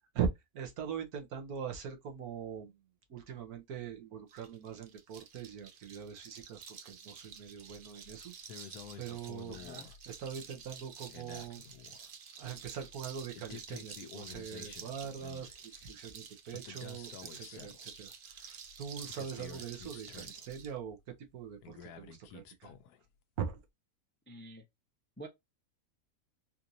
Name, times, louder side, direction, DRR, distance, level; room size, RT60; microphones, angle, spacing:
voice 1, 0.5-2.8 3.1-8.3 9.0-12.0 12.4-22.7 23.4-23.6, right 7 dB, 75° right, 1.5 m, -42 dB
sound 1, 4.3-20.7, right 6 dB, 55° right, 0.6 m, -50 dB
sound 2, 7.7-8.2 8.5-10.3 10.6-10.7 11.1-12.1 12.5-15.8 16.5-18.0 18.4-18.5 18.7-20.9 21.6-23.0 23.4-23.5, left 7 dB, 90° left, 1.2 m, -51 dB
voice 2, 9.5-9.9 24.3-24.6 25.2-25.3, right 1 dB, 15° left, 0.4 m, -48 dB
4.3 x 2.6 x 2.7 m
omnidirectional pair, 1.6 m